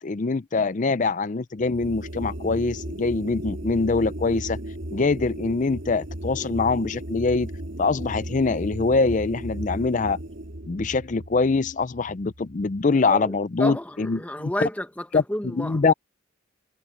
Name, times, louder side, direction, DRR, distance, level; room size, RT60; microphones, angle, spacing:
voice 1, 0.0-4.6 4.9-7.5 7.8-10.2 10.7-14.5 15.1-15.2 15.5-15.9, left 4 dB, 40° left, 0.5 m, -24 dB
sound 1, 1.6-12.9, right 1 dB, 60° right, 2.0 m, -36 dB
voice 2, 12.9-13.3 13.6-15.8, left 1 dB, 5° left, 1.1 m, -31 dB
head